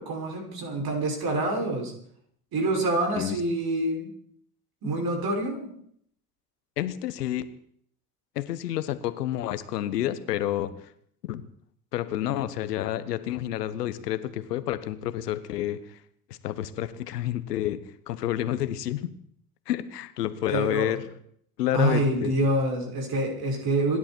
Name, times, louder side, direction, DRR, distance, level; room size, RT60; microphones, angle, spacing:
voice 1, 0.0-1.9 2.5-4.1 4.8-5.8 20.5-20.9 21.7-24.0, right 2 dB, 50° right, 1 dB, 6.6 m, -26 dB
voice 2, 6.8-7.5 8.3-10.7 11.2-11.5 11.9-16.0 16.3-19.1 19.7-21.0 21.6-22.3, left 12 dB, 85° left, 13 dB, 1.3 m, -29 dB
27.0 x 11.0 x 4.6 m, 0.65 s
hypercardioid pair, 70°, 46 cm